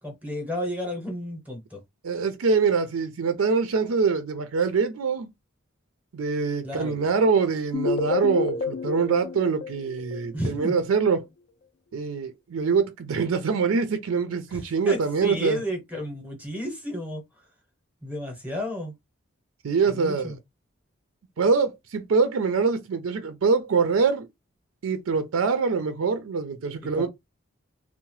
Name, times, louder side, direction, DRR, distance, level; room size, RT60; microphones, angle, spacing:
voice 1, 0.0-1.8 6.6-6.9 10.3-10.8 14.5-17.2 18.0-18.9 19.9-20.4 26.8-27.1, equal, 5° right, 0.7 m, -32 dB
voice 2, 2.0-5.3 6.1-11.2 11.9-15.6 19.6-20.3 21.4-24.3 24.8-27.1, right 5 dB, 85° right, 0.4 m, -24 dB
sound 1, 7.7-10.7, left 4 dB, 55° left, 0.4 m, -30 dB
2.7 x 2.0 x 3.0 m
head